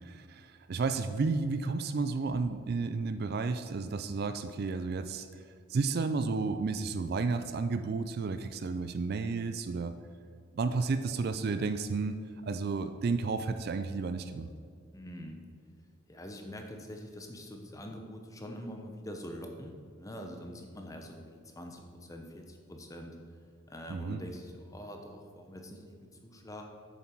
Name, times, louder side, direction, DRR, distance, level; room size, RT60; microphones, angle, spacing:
voice 1, 0.0-5.4 5.7-9.9 10.5-14.5 23.9-24.2, right 4 dB, 50° right, 9 dB, 0.3 m, -32 dB
voice 2, 14.9-15.4 16.1-23.2 23.7-26.6, equal, 15° left, 3 dB, 0.8 m, -44 dB
8.3 x 7.2 x 4.5 m, 2.2 s
head